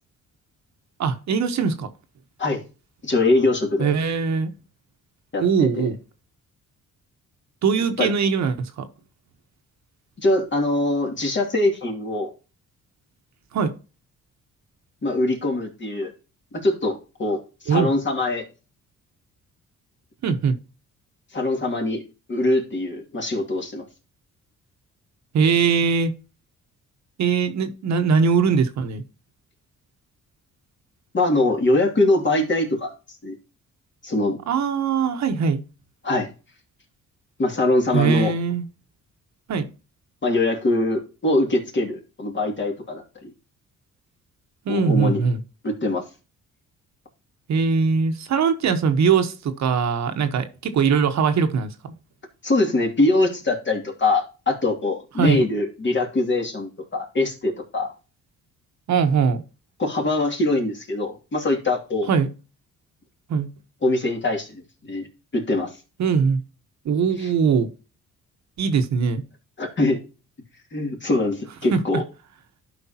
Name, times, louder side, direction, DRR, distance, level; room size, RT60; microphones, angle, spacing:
voice 1, 1.0-1.9 3.8-4.5 5.4-6.0 7.6-8.9 13.5-13.7 17.7-17.9 20.2-20.6 25.3-26.1 27.2-29.0 34.5-35.6 37.9-38.7 39.5-39.7 44.6-45.4 47.5-51.9 55.2-55.4 58.9-59.4 62.1-62.3 63.3-63.5 66.0-66.4 66.8-67.7 68.6-69.2 71.7-71.8, right 6 dB, 65° right, 1.2 m, -21 dB
voice 2, 3.0-3.9 5.3-5.9 8.0-8.1 10.2-12.3 15.0-16.1 16.5-18.5 21.3-22.0 22.3-23.9 31.1-32.9 33.2-33.4 34.0-34.4 36.0-36.3 37.4-38.3 40.2-43.3 44.7-45.2 45.6-46.1 52.4-57.9 59.8-62.1 63.8-64.6 64.9-65.1 65.3-65.7 69.6-70.0 70.7-72.0, left 2 dB, 40° left, 2.5 m, -23 dB
12.5 x 5.1 x 2.9 m
cardioid pair, 90°, 30 cm